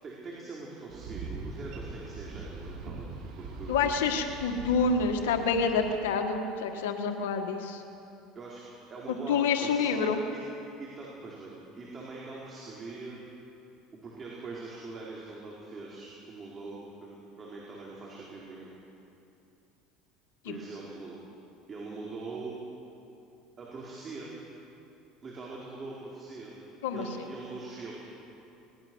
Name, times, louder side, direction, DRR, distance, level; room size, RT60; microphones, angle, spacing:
voice 1, 0.0-3.9 8.3-8.6 8.9-10.4 10.8-13.2 13.9-18.7 20.4-21.2 21.7-22.5 23.6-24.3 25.2-26.5 26.9-27.9, right 3 dB, 30° right, -5 dB, 4.7 m, -42 dB
Boat Water vehicle, 0.9-6.0, right 3 dB, 65° right, 3.8 m, -42 dB
voice 2, 3.7-7.8 9.3-10.2 26.8-27.0, left 5 dB, 90° left, 5 dB, 1.5 m, -27 dB
22.0 x 19.5 x 6.3 m, 2.8 s
supercardioid pair, 105°, 0 cm